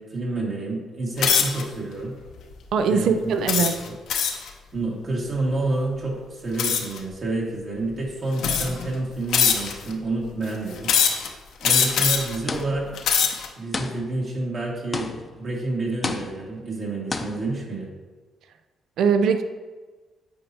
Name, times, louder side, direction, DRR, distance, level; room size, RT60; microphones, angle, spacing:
voice 1, 0.0-2.2 2.9-3.9 4.7-10.9 11.6-12.9 13.6-15.1 15.4-17.9, right 2 dB, 50° right, -3 dB, 1.9 m, -29 dB
sound 1, 1.2-1.6 2.3-2.5 3.5-4.5 6.6-7.0 7.8-7.9 8.4-8.9 9.3-9.9 10.8-11.3 11.6-12.4 12.9-13.5, left 7 dB, 75° left, 0.7 m, -22 dB
voice 2, 2.7-3.8 19.0-19.4, right 6 dB, 70° right, 9 dB, 0.4 m, -21 dB
sound 2, 12.5-13.0 13.7-14.3 14.9-15.5 16.0-16.6 17.1-17.5, left 3 dB, 35° left, 0.6 m, -31 dB
8.2 x 4.3 x 2.8 m, 1.3 s
supercardioid pair, 60°, 0 cm